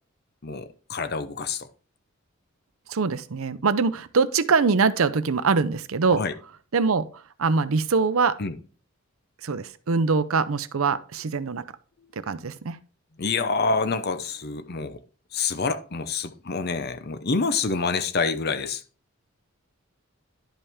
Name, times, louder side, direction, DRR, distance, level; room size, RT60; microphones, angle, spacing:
voice 1, 0.4-1.7 6.2-6.3 8.4-8.5 13.2-15.0 15.3-18.8, left 4 dB, 45° left, 0.7 m, -27 dB
voice 2, 2.9-6.2 6.7-8.4 9.4-11.7 12.2-12.8, right 4 dB, 75° right, 0.6 m, -23 dB
11.5 x 5.4 x 3.6 m
head